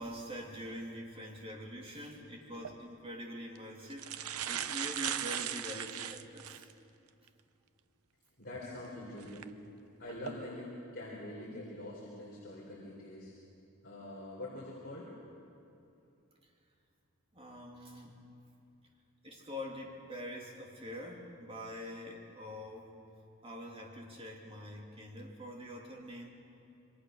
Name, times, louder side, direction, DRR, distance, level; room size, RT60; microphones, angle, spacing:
voice 1, 0.0-4.1 4.4-6.7 17.3-18.2 19.2-23.0 23.4-26.3, equal, 25° right, 0 dB, 3.0 m, -44 dB
sound 1, 2.5-2.7 3.5-3.6 3.9-6.7 7.3-7.4 9.2-9.4 10.0-10.3, right 10 dB, 80° right, 0.8 m, -38 dB
voice 2, 8.4-9.5 10.0-13.3 13.8-15.1, left 1 dB, 45° left, -5 dB, 4.1 m, -44 dB
27.5 x 23.0 x 6.6 m, 2.7 s
head